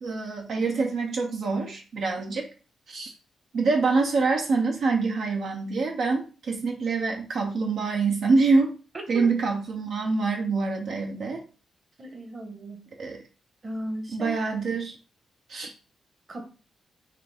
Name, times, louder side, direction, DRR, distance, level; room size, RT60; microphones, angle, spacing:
voice 1, 0.0-2.4 2.9-3.1 3.5-8.7 9.1-11.4 13.0-13.2 14.1-15.0 15.5-15.7, right 4 dB, 70° right, 2 dB, 0.7 m, -25 dB
voice 2, 8.9-9.3 12.0-12.9 13.6-14.3 16.3-16.5, right 1 dB, 35° right, 4 dB, 1.1 m, -36 dB
5.7 x 2.5 x 3.4 m, 0.35 s
cardioid pair, 100°, 0 cm